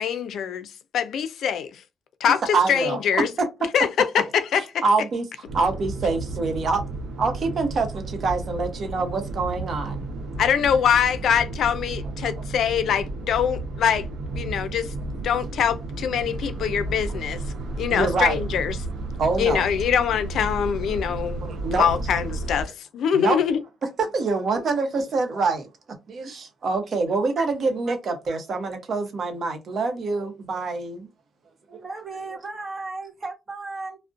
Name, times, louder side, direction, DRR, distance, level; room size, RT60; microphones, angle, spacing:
voice 1, 0.0-1.8 2.2-3.3 3.7-4.8 10.4-14.1 14.3-14.9 15.2-17.4 17.8-18.8 19.4-23.6, left 8 dB, 70° left, 0.4 m, -24 dB
voice 2, 2.5-3.0 4.8-5.2 5.5-6.8 7.2-10.0 17.9-18.4 19.2-19.6 21.4-21.8 23.1-23.4 24.0-25.7 26.1-31.1, right 3 dB, 55° right, 0.7 m, -25 dB
sound 1, 5.5-22.6, right 2 dB, 90° right, 0.8 m, -32 dB
voice 3, 31.7-34.0, right 3 dB, 35° right, 1.1 m, -35 dB
2.4 x 2.1 x 2.5 m
cardioid pair, 90°, 0 cm